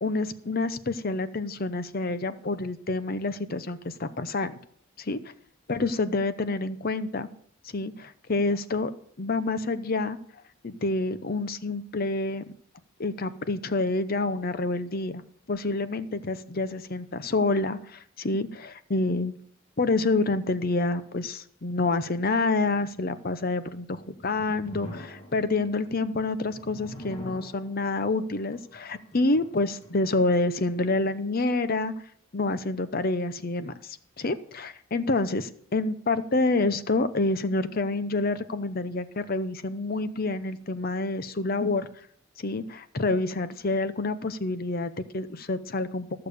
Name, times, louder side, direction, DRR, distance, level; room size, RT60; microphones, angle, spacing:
voice 1, 0.0-4.6 5.0-5.2 5.7-7.3 7.7-8.9 9.2-10.2 10.6-12.5 13.0-15.2 15.5-19.4 19.8-31.9 32.3-41.9 42.4-46.3, left 2 dB, 45° left, 12 dB, 0.7 m, -28 dB
sound 1, 23.8-31.0, left 1 dB, 30° left, 1.7 m, -45 dB
14.5 x 6.8 x 6.7 m, 0.63 s
head